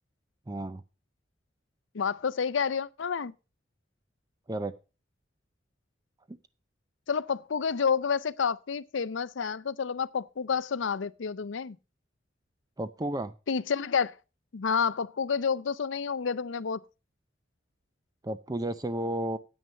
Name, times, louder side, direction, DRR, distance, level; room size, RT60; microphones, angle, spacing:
voice 1, 0.5-0.8 4.5-4.7 6.3-6.4 12.8-13.3 18.2-19.4, right 1 dB, 20° right, 0.5 m, -32 dB
voice 2, 1.9-3.3 7.1-11.8 13.5-14.2 14.5-16.8, left 6 dB, 75° left, 0.5 m, -29 dB
9.4 x 8.9 x 5.4 m
head